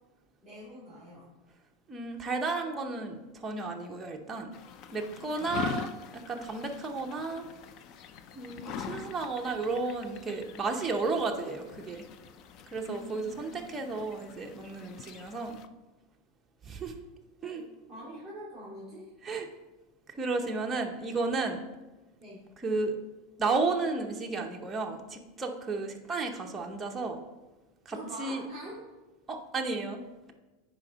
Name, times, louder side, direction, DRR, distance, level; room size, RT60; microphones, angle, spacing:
voice 1, 0.4-1.3 12.8-13.7 17.4-17.6 17.9-19.1 22.2-22.4 27.9-28.8, equal, 10° left, -11 dB, 2.5 m, -45 dB
voice 2, 1.9-4.5 4.9-7.5 8.3-12.1 12.7-15.6 16.6-16.9 17.4-17.6 19.2-19.5 20.2-21.6 22.6-22.9 23.4-27.2 27.9-28.4 29.3-30.0, right 3 dB, 10° right, 1 dB, 0.7 m, -33 dB
sound 1, 4.5-15.7, left 7 dB, 35° left, 0.4 m, -43 dB
9.5 x 5.0 x 3.9 m, 1.1 s
supercardioid pair, 165°, 0 cm